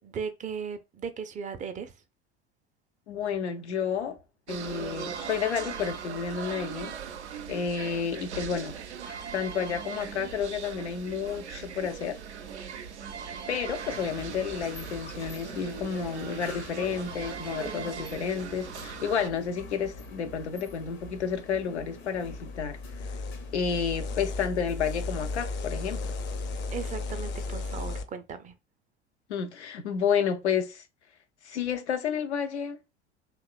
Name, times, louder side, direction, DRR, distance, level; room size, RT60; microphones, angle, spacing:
voice 1, 0.0-2.0 26.7-28.5, right 6 dB, 25° right, 0.4 m, -37 dB
voice 2, 3.1-4.2 4.5-6.9 7.5-8.7 9.1-12.2 13.5-22.8 23.5-26.1 29.3-30.8 31.4-32.8, left 7 dB, 90° left, 0.5 m, -31 dB
sound 1, 4.5-19.3, right 7 dB, 85° right, 0.5 m, -39 dB
sound 2, 13.9-28.0, left 3 dB, 70° left, 0.9 m, -46 dB
sound 3, 22.2-28.0, left 3 dB, 35° left, 0.4 m, -35 dB
2.9 x 2.2 x 2.3 m
hypercardioid pair, 75°, 33 cm